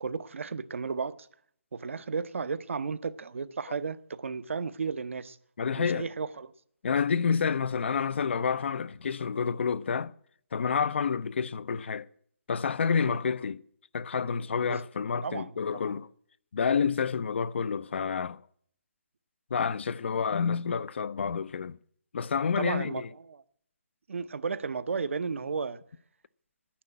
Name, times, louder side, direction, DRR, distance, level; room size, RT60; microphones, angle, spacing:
voice 1, 0.0-1.3 1.7-5.4 5.8-6.5 13.0-13.2 14.7-14.8 15.2-16.0 22.6-23.4 24.1-25.8, right 5 dB, 75° right, 0.8 m, -34 dB
voice 2, 5.6-6.1 6.8-10.1 10.5-12.1 12.5-13.6 13.9-16.1 16.5-18.4 19.5-21.8 22.1-23.1, left 6 dB, 60° left, 0.5 m, -29 dB
10.5 x 10.5 x 8.5 m
hypercardioid pair, 160°, 7 cm